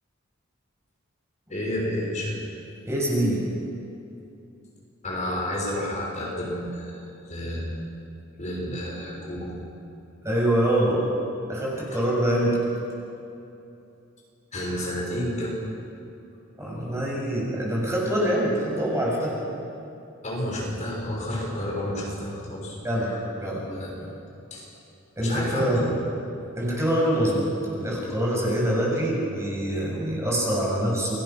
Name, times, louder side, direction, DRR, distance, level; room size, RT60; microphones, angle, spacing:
voice 1, 1.5-2.4 5.0-7.7 8.4-9.5 14.5-15.6 20.2-23.2 23.7-23.9 24.5-24.7 25.2-25.7, left 1 dB, 35° left, -3 dB, 6.3 m, -30 dB
voice 2, 2.9-3.5 10.2-11.0 11.5-12.6 16.6-19.4 22.8-23.6 24.0-24.1 25.2-25.9 26.6-31.2, right 1 dB, 15° right, -4 dB, 7.0 m, -25 dB
29.5 x 22.0 x 6.2 m, 2.7 s
head